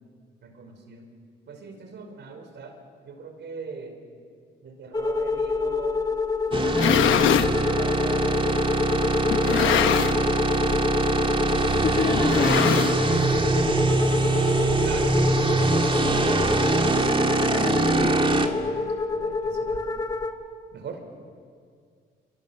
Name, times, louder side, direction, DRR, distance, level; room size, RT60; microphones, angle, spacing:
voice 1, 0.4-1.1 1.5-4.0 4.6-6.0 6.7-9.5 14.8-15.9 19.1-19.8 20.7-21.0, right 5 dB, 60° right, 5 dB, 5.1 m, -42 dB
sound 1, 4.9-20.3, left 4 dB, 20° left, 1.8 m, -28 dB
sound 2, 6.5-7.5 8.3-8.4 9.3-10.3 10.6-10.9 11.2-11.3 12.2-13.2, left 11 dB, 80° left, 1.1 m, -23 dB
sound 3, 6.5-18.5, right 3 dB, 25° right, 2.5 m, -23 dB
voice 2, 11.8-12.8 17.5-18.2, left 4 dB, 45° left, 6 dB, 2.1 m, -28 dB
29.0 x 24.5 x 7.6 m, 2.1 s
cardioid pair, 90°, 20 cm